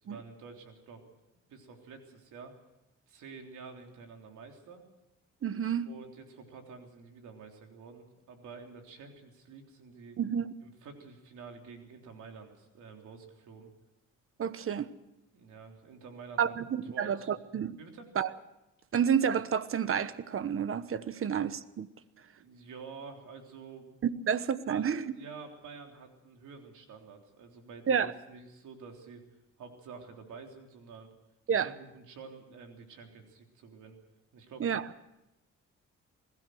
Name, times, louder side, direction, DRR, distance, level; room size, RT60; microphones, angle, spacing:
voice 1, 0.0-1.0 1.5-2.5 3.1-4.8 5.9-10.2 10.6-13.7 15.3-16.5 16.9-17.4 17.8-18.1 21.1-21.3 22.4-23.9 24.7-29.2 29.6-31.1 31.5-34.0 34.3-34.7, right 5 dB, 75° right, 3.6 m, -49 dB
voice 2, 5.4-5.9 10.2-10.5 14.4-14.9 16.4-17.7 18.2-18.3 18.9-21.9 24.0-25.0 27.9-28.1 31.5-31.7 34.6-34.8, right 8 dB, 45° right, 1.1 m, -30 dB
21.5 x 16.0 x 7.8 m
cardioid pair, 90°, 30 cm